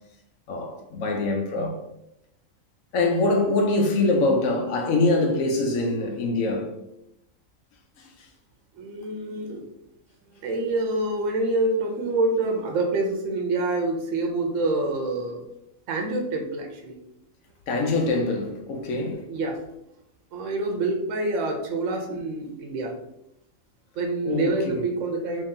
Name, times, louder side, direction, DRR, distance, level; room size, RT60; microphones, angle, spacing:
voice 1, 0.5-1.7 2.9-6.7 8.0-8.1 17.7-19.2 22.1-22.2 24.3-24.8, left 2 dB, 75° left, 1.1 m, -24 dB
voice 2, 8.7-9.6 10.3-15.5 15.9-17.0 19.3-19.6 20.3-23.0 24.0-25.4, right 2 dB, 70° right, 0.9 m, -26 dB
3.1 x 2.8 x 3.7 m
omnidirectional pair, 1.4 m